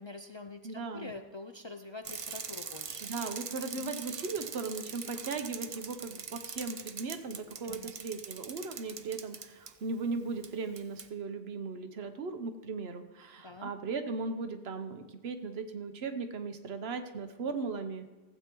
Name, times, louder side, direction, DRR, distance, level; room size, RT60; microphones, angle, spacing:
voice 1, 0.0-3.0 3.8-3.9 7.6-7.9 13.4-13.7, left 3 dB, 45° left, 6 dB, 0.4 m, -45 dB
voice 2, 0.6-1.1 3.0-18.1, right 4 dB, 85° right, 8 dB, 1.1 m, -37 dB
Bicycle, 2.0-9.7 10.4-10.5 10.8-11.1, right 6 dB, 40° right, 0.5 m, -42 dB
15.5 x 8.3 x 3.0 m, 1.3 s
omnidirectional pair, 1.0 m